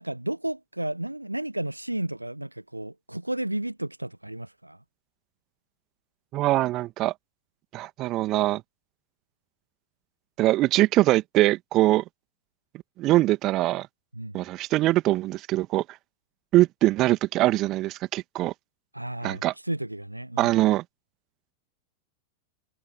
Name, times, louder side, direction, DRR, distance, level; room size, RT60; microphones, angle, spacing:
voice 1, 0.0-4.8 14.1-14.4 18.9-20.5, right 1 dB, 85° right, 1.4 m, -33 dB
voice 2, 6.3-7.1 7.7-8.6 10.4-12.0 13.0-13.9 14.3-15.8 16.5-18.5 19.2-19.5 20.4-20.8, right 16 dB, 35° right, 1.9 m, -22 dB
figure-of-eight pair, 90°, 0 cm